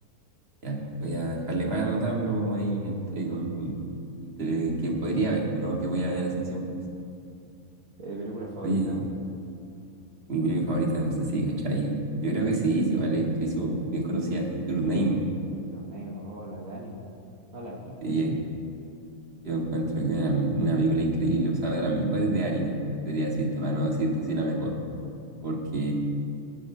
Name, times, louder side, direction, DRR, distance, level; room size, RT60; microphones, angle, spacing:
voice 1, 0.6-3.9 4.4-6.7 8.6-9.0 10.3-15.2 18.0-18.4 19.4-22.8 23.1-24.7 25.4-25.9, right 2 dB, 40° right, -2 dB, 2.0 m, -27 dB
voice 2, 8.0-9.1 15.7-17.1 17.5-18.4, right 1 dB, 60° right, -3 dB, 1.6 m, -38 dB
23.5 x 11.0 x 2.7 m, 2.6 s
omnidirectional pair, 1.6 m